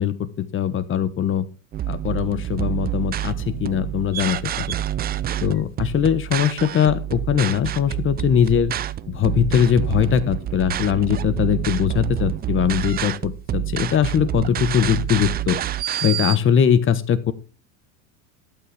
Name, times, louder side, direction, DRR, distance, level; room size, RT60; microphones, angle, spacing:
voice 1, 0.0-1.5 1.9-4.4 5.4-8.7 9.1-15.6 16.0-17.3, left 9 dB, 30° left, 15 dB, 1.3 m, -21 dB
sound 1, 1.7-16.4, right 12 dB, 25° right, 0.5 m, -27 dB
12.5 x 9.0 x 3.5 m, 0.34 s
supercardioid pair, 110°, 40 cm